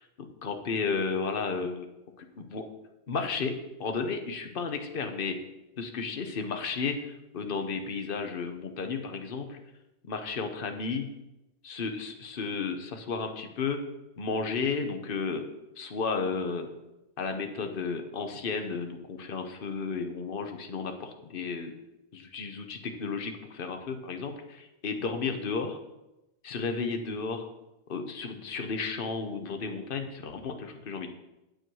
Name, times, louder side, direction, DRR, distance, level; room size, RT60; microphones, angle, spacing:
voice 1, 0.2-1.9 2.2-2.6 3.1-5.4 5.8-9.6 10.1-11.1 11.6-13.8 14.2-15.5 15.8-16.7 17.2-20.9 21.3-21.7 22.1-25.8 26.4-27.5 27.9-31.1, left 4 dB, 50° left, 5 dB, 1.1 m, -33 dB
9.1 x 7.6 x 4.7 m, 0.96 s
omnidirectional pair, 1.2 m